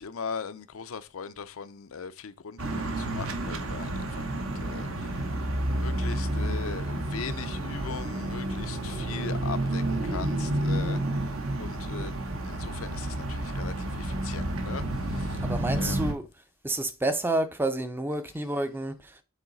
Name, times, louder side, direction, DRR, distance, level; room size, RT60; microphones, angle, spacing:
voice 1, 0.0-5.3 5.7-12.2 12.4-15.4 15.8-16.1, left 6 dB, 75° left, 0.5 m, -40 dB
sound 1, 2.6-16.1, right 1 dB, 70° right, 1.0 m, -30 dB
voice 2, 15.4-16.3 16.6-19.2, right 2 dB, 10° right, 0.5 m, -29 dB
7.2 x 3.9 x 4.0 m
head